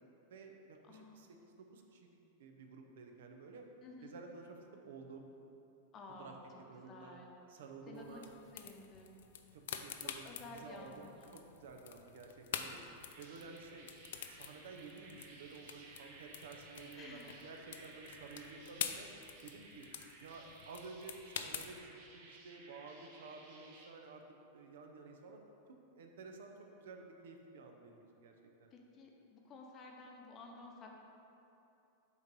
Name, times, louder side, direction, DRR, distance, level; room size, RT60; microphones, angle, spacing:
voice 1, 0.3-3.7 4.0-5.3 6.2-6.3 6.7-7.2 7.5-8.3 9.5-12.8 13.2-13.9 14.3-19.1 19.4-19.9 20.2-24.2 24.5-25.4 25.7-28.3 28.6-28.7, right 4 dB, 80° right, 3 dB, 0.8 m, -52 dB
voice 2, 0.8-1.3 3.8-4.1 5.9-6.4 6.7-7.4 7.8-8.2 8.5-9.2 10.0-11.4 17.0-17.3 18.8-19.1 28.7-31.0, left 3 dB, 25° left, 0 dB, 0.8 m, -53 dB
sound 1, 7.9-21.8, left 8 dB, 80° left, 0.4 m, -48 dB
sound 2, 13.0-23.9, right 3 dB, 55° right, 1.1 m, -57 dB
8.1 x 3.1 x 5.3 m, 2.9 s
supercardioid pair, 145°, 0 cm